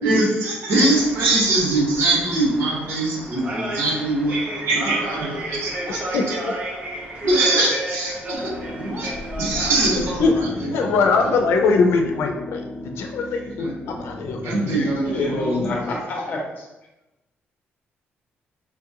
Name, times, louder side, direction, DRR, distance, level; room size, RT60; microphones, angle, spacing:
voice 1, 0.0-6.4 6.9-9.1 9.4-10.9 11.2-11.3 13.2-13.8 14.4-16.0, right 2 dB, 80° right, -5 dB, 1.4 m, -23 dB
sound 1, 0.9-10.3, right 1 dB, 30° right, 0.6 m, -33 dB
sound 2, 8.3-15.7, left 1 dB, 10° left, 0.7 m, -37 dB
voice 2, 10.2-14.7, left 4 dB, 85° left, 3 dB, 0.5 m, -21 dB
voice 3, 14.8-16.7, left 2 dB, 45° left, 0 dB, 0.8 m, -27 dB
4.3 x 2.4 x 2.8 m, 0.98 s
cardioid pair, 175°, 4 cm